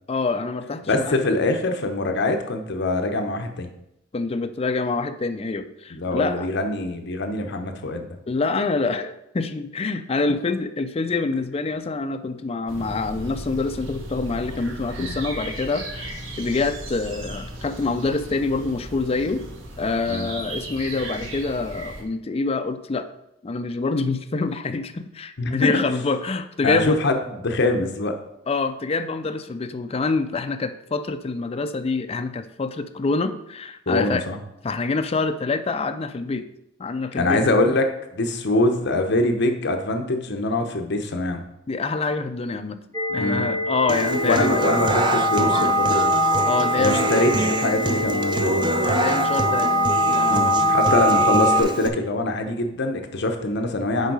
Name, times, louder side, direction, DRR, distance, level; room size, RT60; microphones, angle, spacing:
voice 1, 0.1-1.2 4.1-6.5 8.3-19.4 19.8-23.1 23.4-27.0 28.5-34.2 34.6-36.5 36.8-37.5 41.7-42.8 43.1-44.6 46.4-47.1 48.8-49.7 50.1-50.7, left 3 dB, 30° left, 8 dB, 0.4 m, -26 dB
voice 2, 0.8-3.7 5.9-8.1 15.0-15.2 20.1-20.3 25.4-25.7 26.6-28.2 33.9-34.4 37.2-41.4 43.2-43.4 44.2-46.1 46.8-48.7 50.3-54.1, left 2 dB, 60° left, 5 dB, 0.8 m, -24 dB
sound 1, 12.7-22.0, right 1 dB, 75° right, 1.3 m, -36 dB
sound 2, 42.9-51.6, equal, 15° left, 0.8 m, -22 dB
Human voice / Acoustic guitar, 43.9-51.9, right 2 dB, 25° right, 0.4 m, -26 dB
6.6 x 4.6 x 4.8 m, 0.82 s
head